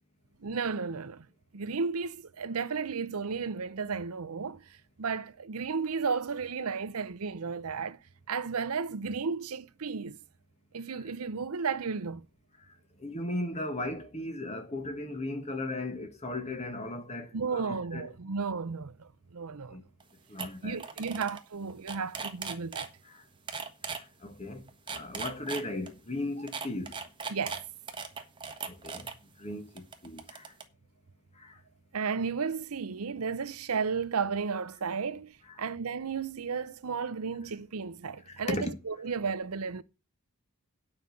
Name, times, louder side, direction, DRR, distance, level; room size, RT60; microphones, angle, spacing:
voice 1, 0.4-1.3 1.5-4.6 5.0-8.0 8.3-10.2 10.7-12.2 17.3-19.8 20.6-22.9 27.3-27.6 31.9-39.8, right 5 dB, 80° right, 0.7 m, -33 dB
voice 2, 13.0-18.1 19.7-19.8 20.3-20.8 21.1-21.2 23.9-26.9 28.7-29.1 29.4-30.4 31.4-31.6 35.5-35.6 38.3-38.7, left 2 dB, 30° left, 1.9 m, -37 dB
sound 1, 20.0-20.1 20.4-20.5 20.8-21.4 21.7-22.9 23.5-24.0 24.7-25.9 26.5-29.1 29.8-30.6, right 5 dB, 20° right, 1.3 m, -38 dB
9.6 x 5.5 x 8.2 m
head